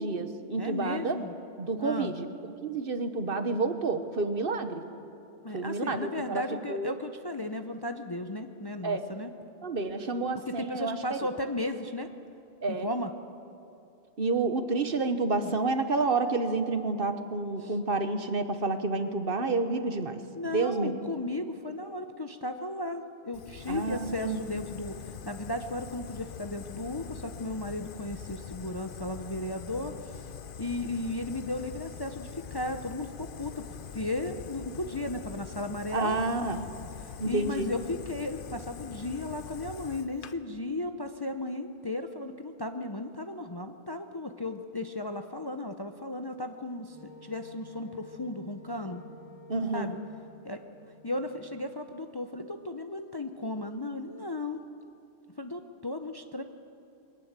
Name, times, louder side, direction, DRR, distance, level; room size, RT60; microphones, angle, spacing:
voice 1, 0.0-1.2 1.6-4.8 5.5-6.4 6.7-6.9 8.8-9.0 9.6-11.3 12.6-12.9 14.2-20.2 20.5-21.0 23.7-24.4 35.9-36.7 37.2-37.7 49.5-49.9, right 3 dB, 50° right, 9 dB, 1.3 m, -29 dB
voice 2, 0.6-1.3 1.8-2.1 5.4-9.3 10.5-12.1 12.7-13.1 15.4-15.5 17.6-17.7 20.4-30.2 30.6-36.2 37.0-47.0 47.2-49.0 49.7-50.0 50.4-50.6 51.0-54.6 55.4-56.4, left 2 dB, 25° left, 7 dB, 0.7 m, -35 dB
Fire, 23.3-40.3, left 7 dB, 55° left, 0.8 m, -44 dB
Wind instrument woodwind instrument, 46.9-51.6, left 1 dB, 5° right, 4.9 m, -51 dB
21.5 x 18.5 x 7.5 m, 2.9 s
omnidirectional pair, 1.2 m